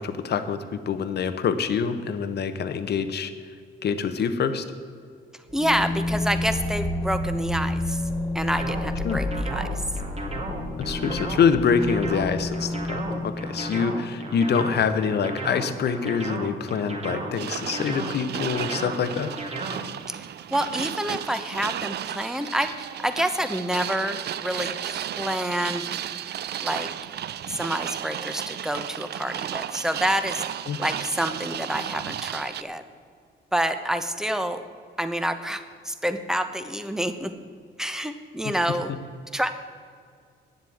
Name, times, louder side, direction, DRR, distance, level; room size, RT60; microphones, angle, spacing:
voice 1, 0.0-3.3 3.8-4.6 9.0-9.2 10.8-19.3 30.7-30.8, left 6 dB, 55° left, 10 dB, 0.9 m, -25 dB
sound 1, 5.5-14.1, left 1 dB, 15° left, 1.2 m, -30 dB
voice 2, 5.5-8.0 8.3-9.8 20.1-20.2 20.5-25.9 26.6-26.9 27.5-30.4 30.8-32.8 33.5-34.6 35.0-37.3 37.8-38.9 39.3-39.5, equal, 5° right, 9 dB, 0.9 m, -28 dB
sound 2, 8.5-20.0, right 2 dB, 30° right, 2.2 m, -34 dB
sound 3, 17.4-32.6, right 10 dB, 55° right, 0.5 m, -34 dB
9.5 x 7.7 x 8.6 m, 2.1 s
cardioid pair, 90°, 20 cm